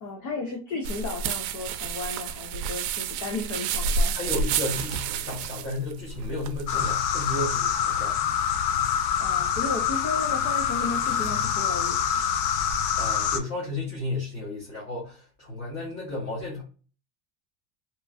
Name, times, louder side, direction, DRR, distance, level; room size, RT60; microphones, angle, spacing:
voice 1, 0.0-4.2 9.2-12.0, left 3 dB, 40° left, 1 dB, 0.5 m, -34 dB
sound 1, 0.8-7.7, right 5 dB, 85° right, 0.6 m, -30 dB
voice 2, 4.1-8.2 8.7-8.9 12.9-16.6, left 2 dB, 25° left, -5 dB, 0.8 m, -33 dB
sound 2, 6.7-13.4, left 8 dB, 90° left, 0.7 m, -26 dB
3.0 x 2.3 x 2.4 m, 0.37 s
cardioid pair, 160°, 48 cm